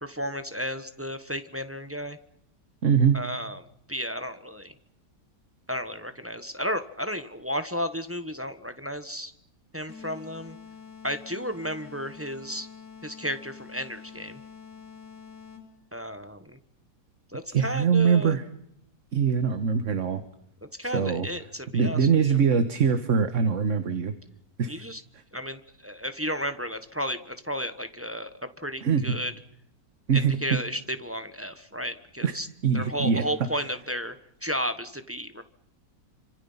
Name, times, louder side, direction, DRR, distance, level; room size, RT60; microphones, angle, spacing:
voice 1, 0.0-2.2 3.1-3.6 3.9-4.7 5.7-9.3 9.7-10.6 11.0-12.7 13.0-14.4 15.9-16.6 17.3-18.4 20.6-22.4 24.7-25.0 25.3-29.3 30.1-32.5 32.7-34.1 34.4-35.4, equal, 10° right, 10 dB, 1.0 m, -33 dB
voice 2, 2.8-3.2 17.5-18.5 19.1-20.2 20.8-21.3 21.7-24.1 24.6-24.9 25.1-25.2 28.8-29.1 30.1-30.6 32.2-32.4 32.6-33.2, right 6 dB, 45° right, 9 dB, 1.6 m, -23 dB
sound 1, 9.9-15.9, left 6 dB, 80° left, 4.6 m, -46 dB
27.5 x 26.0 x 5.7 m, 0.73 s
omnidirectional pair, 1.9 m